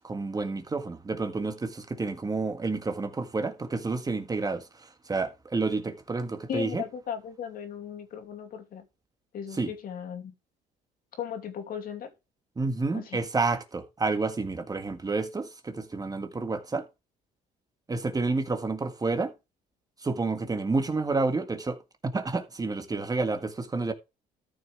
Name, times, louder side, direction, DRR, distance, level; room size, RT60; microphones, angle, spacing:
voice 1, 0.0-6.8 9.6-9.7 12.6-16.8 17.9-19.3 20.0-21.8 22.1-23.9, right 3 dB, 20° right, 1.7 m, -29 dB
voice 2, 6.5-8.8 9.3-10.3 11.2-12.1 12.9-13.2, left 8 dB, 60° left, 2.9 m, -36 dB
13.5 x 6.3 x 3.5 m
cardioid pair, 110°, 17 cm